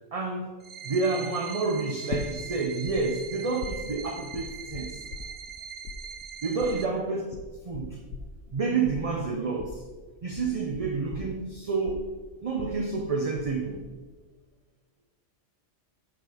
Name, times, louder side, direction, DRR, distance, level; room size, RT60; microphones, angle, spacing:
voice 1, 0.1-0.5 0.8-5.0 6.4-7.3 7.6-8.0 8.5-9.8 10.2-12.1 12.4-13.8, right 4 dB, 35° right, 2 dB, 0.6 m, -29 dB
sound 1, 0.6-6.8, right 7 dB, 85° right, 0.3 m, -41 dB
sound 2, 2.1-3.0 3.2-5.6 5.8-13.5 13.7-14.3, left 7 dB, 80° left, 1.0 m, -40 dB
9.2 x 6.9 x 3.4 m, 1.4 s
omnidirectional pair, 1.3 m